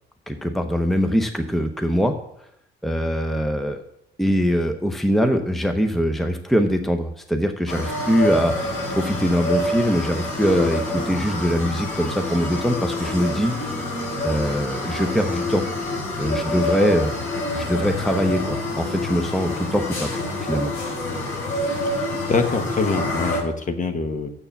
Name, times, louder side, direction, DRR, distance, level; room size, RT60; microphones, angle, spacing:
voice 1, 0.3-2.2 2.8-3.8 4.2-13.6 14.2-15.6 16.2-17.2 17.5-20.2 20.5-20.7, equal, ahead, 6 dB, 0.7 m, -22 dB
sound 1, 7.7-23.4, left 1 dB, 90° left, 3.7 m, -27 dB
voice 2, 22.3-24.3, left 4 dB, 40° left, 7 dB, 1.2 m, -24 dB
7.0 x 6.7 x 7.2 m, 0.78 s
cardioid pair, 90°, 20 cm